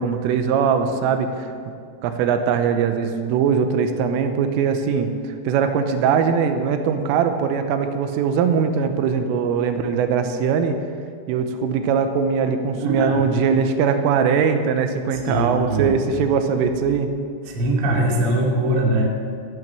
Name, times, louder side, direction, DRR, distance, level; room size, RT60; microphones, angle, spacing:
voice 1, 0.0-1.5 2.0-5.1 5.4-10.8 11.3-17.1, right 6 dB, 90° right, 7 dB, 3.4 m, -21 dB
voice 2, 12.8-13.3 15.1-15.9 17.5-19.0, right 1 dB, 40° right, -2 dB, 2.3 m, -22 dB
13.5 x 12.0 x 7.6 m, 2.2 s
omnidirectional pair, 5.9 m